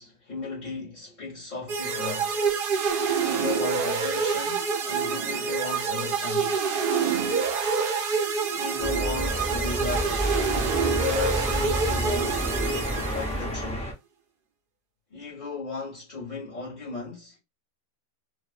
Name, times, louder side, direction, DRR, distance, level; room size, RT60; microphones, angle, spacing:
voice 1, 0.0-2.4 3.2-6.6 8.5-10.3 10.9-12.5 12.9-13.9 15.1-17.4, left 4 dB, 35° left, 1.0 m, -35 dB
sound 1, 1.7-13.5, right 5 dB, 65° right, 0.5 m, -27 dB
sound 2, 8.8-13.9, equal, 10° left, 0.3 m, -29 dB
2.7 x 2.1 x 2.4 m
omnidirectional pair, 1.4 m